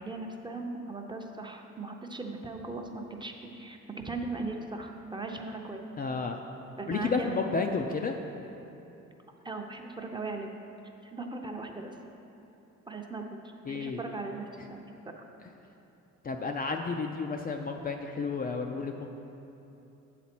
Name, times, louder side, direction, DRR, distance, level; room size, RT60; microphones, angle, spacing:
voice 1, 0.0-5.8 6.8-7.5 9.4-10.5 11.1-11.9 12.9-13.2 13.7-14.9, right 3 dB, 15° right, 2 dB, 0.6 m, -38 dB
voice 2, 6.0-6.4 6.9-8.1 13.7-14.0 16.2-19.1, left 4 dB, 30° left, 3 dB, 0.4 m, -31 dB
7.7 x 4.2 x 6.0 m, 2.9 s
cardioid pair, 90°, 30 cm